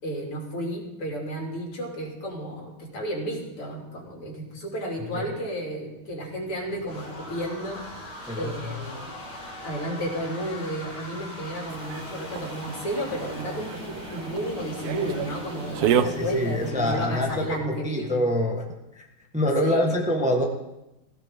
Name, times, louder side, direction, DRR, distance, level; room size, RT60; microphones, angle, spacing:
voice 1, 0.0-7.8 8.4-9.1 9.6-18.1 19.6-20.1, right 1 dB, 90° left, -1 dB, 3.9 m, -32 dB
sound 1, 6.3-17.5, left 1 dB, 50° left, 4.2 m, -40 dB
sound 2, 11.7-16.7, right 9 dB, 85° right, 0.8 m, -31 dB
voice 2, 15.9-18.7 19.0-19.1 19.3-20.4, left 1 dB, 5° right, 1 dB, 1.2 m, -25 dB
17.0 x 16.0 x 3.8 m, 0.94 s
omnidirectional pair, 2.4 m